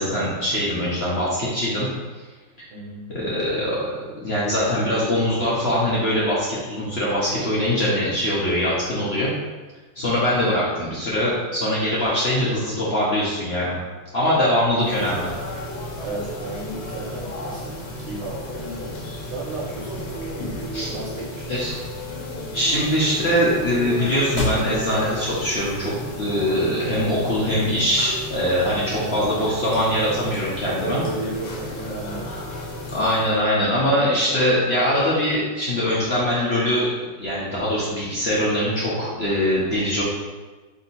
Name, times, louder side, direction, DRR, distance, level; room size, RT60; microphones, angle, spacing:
voice 1, 0.0-1.9 2.1-2.2 3.1-3.9 4.2-9.3 9.9-13.8 14.1-15.3 20.7-20.9 21.5-21.7 22.5-31.0 32.9-36.9 37.2-40.0, equal, 50° left, -7 dB, 0.7 m, -22 dB
voice 2, 2.7-3.1 16.0-18.7 19.2-20.1 20.9-21.7 28.9-29.3 30.8-32.3, right 2 dB, 50° right, -4 dB, 1.0 m, -34 dB
sound 1, 14.8-33.4, left 1 dB, 70° left, 1.4 m, -33 dB
sound 2, 19.3-26.4, left 1 dB, 20° left, 1.2 m, -35 dB
3.6 x 2.8 x 4.1 m, 1.3 s
omnidirectional pair, 2.1 m